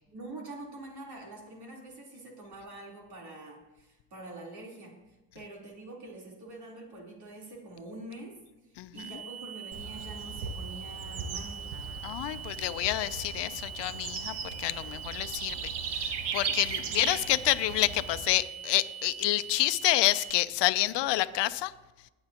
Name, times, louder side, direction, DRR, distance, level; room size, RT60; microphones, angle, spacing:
voice 1, 0.1-5.0 5.3-8.4 8.9-11.7 16.9-17.2, right 2 dB, 65° right, -2 dB, 3.7 m, -45 dB
sound 1, 9.0-20.4, right 8 dB, 20° right, 0.5 m, -43 dB
Bird / Insect, 9.7-18.3, right 5 dB, 80° right, 1.2 m, -38 dB
voice 2, 12.0-21.7, left 16 dB, 85° left, 13 dB, 0.6 m, -28 dB
21.0 x 8.7 x 2.9 m, 1.1 s
cardioid pair, 65°, 41 cm